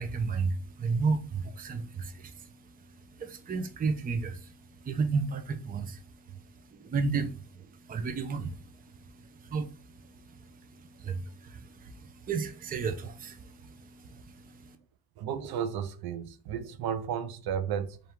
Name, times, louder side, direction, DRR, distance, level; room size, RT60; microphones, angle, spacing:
voice 1, 0.0-14.8, right 4 dB, 25° right, 0.4 m, -34 dB
voice 2, 15.2-18.0, right 8 dB, 90° right, 0.6 m, -33 dB
3.4 x 2.5 x 4.3 m
cardioid pair, 160°, 36 cm